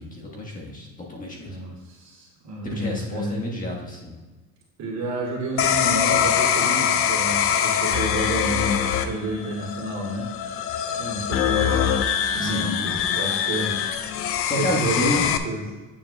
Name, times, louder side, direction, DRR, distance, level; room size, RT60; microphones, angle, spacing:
voice 1, 0.0-1.6 2.6-4.2 12.3-12.9 14.4-15.2, left 1 dB, 25° left, -2 dB, 1.4 m, -29 dB
voice 2, 1.4-3.4 4.8-10.3 11.0-15.7, right 1 dB, 55° right, -4 dB, 2.3 m, -30 dB
sound 1, 5.6-15.4, left 8 dB, 45° left, 0.5 m, -23 dB
8.7 x 7.2 x 2.2 m, 1.3 s
supercardioid pair, 110°, 33 cm